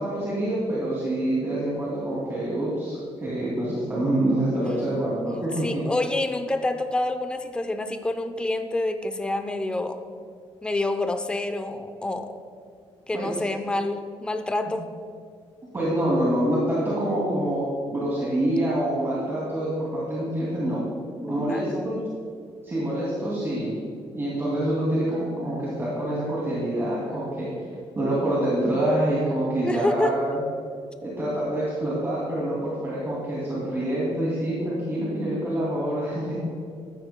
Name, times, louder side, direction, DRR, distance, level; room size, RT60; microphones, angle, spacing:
voice 1, 0.0-5.8 13.1-13.4 15.7-20.8 21.2-22.0 22.6-23.8 24.1-27.5 28.0-30.4 31.0-36.4, right 1 dB, 25° right, -7 dB, 2.5 m, -26 dB
voice 2, 5.3-10.0 10.6-12.3 13.1-14.9 21.2-21.9 29.6-30.2 36.3-36.4, left 2 dB, 10° left, 7 dB, 0.6 m, -28 dB
14.0 x 12.5 x 2.2 m, 2.3 s
cardioid pair, 150°, 11 cm